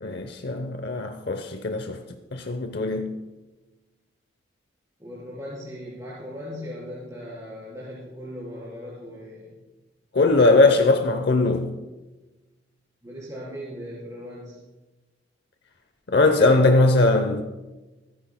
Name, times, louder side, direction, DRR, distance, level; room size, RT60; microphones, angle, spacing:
voice 1, 0.0-2.0 2.3-3.2 10.1-11.7 16.1-17.4, left 2 dB, 60° left, 0.8 m, -20 dB
voice 2, 5.0-9.6 13.0-14.6, equal, 15° right, 3.9 m, -38 dB
24.5 x 9.8 x 2.2 m
head